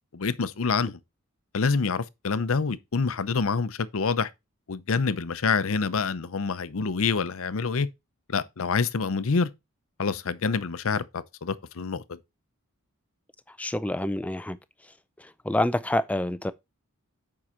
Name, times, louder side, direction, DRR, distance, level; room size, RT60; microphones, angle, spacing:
voice 1, 0.1-1.0 1.5-4.3 4.7-7.9 8.3-9.5 10.0-12.0, left 5 dB, 65° left, 0.6 m, -27 dB
voice 2, 13.5-14.6 15.2-16.5, left 1 dB, 5° left, 0.3 m, -27 dB
7.4 x 4.8 x 4.3 m
head